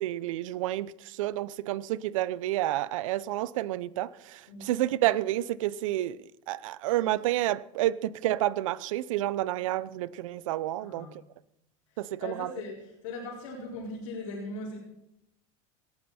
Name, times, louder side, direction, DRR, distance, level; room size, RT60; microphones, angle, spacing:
voice 1, 0.0-6.2 6.5-11.1 12.0-12.5, right 14 dB, 85° right, 0.7 m, -30 dB
voice 2, 10.8-11.1 12.2-14.8, left 2 dB, 85° left, 4.8 m, -39 dB
18.5 x 14.5 x 4.3 m
supercardioid pair, 130°, 16 cm